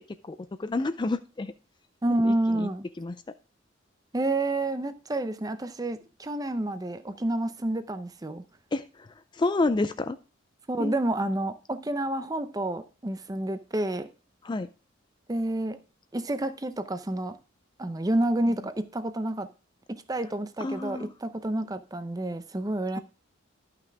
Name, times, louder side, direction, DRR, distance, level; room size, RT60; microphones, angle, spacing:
voice 1, 0.0-1.5 2.2-2.7 3.0-3.2 8.7-10.2 10.8-11.0 14.4-14.7 18.4-18.7 20.6-21.1, left 2 dB, 25° left, 0.3 m, -30 dB
voice 2, 2.0-2.9 4.1-8.4 10.7-14.1 15.3-15.8 16.1-17.4 17.8-19.5 19.9-23.0, right 1 dB, 20° right, 0.6 m, -29 dB
11.5 x 5.9 x 3.4 m
head